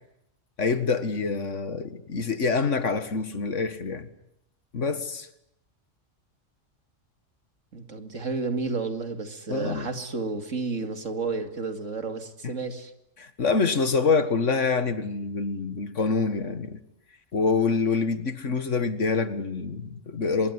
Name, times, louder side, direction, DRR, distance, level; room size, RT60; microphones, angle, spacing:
voice 1, 0.6-4.1 4.7-5.3 9.5-9.9 12.4-12.6 13.2-16.8 17.3-20.5, left 4 dB, 75° left, 2.1 m, -26 dB
voice 2, 7.7-12.9, right 4 dB, 85° right, 2.7 m, -31 dB
24.5 x 22.5 x 9.7 m
omnidirectional pair, 1.3 m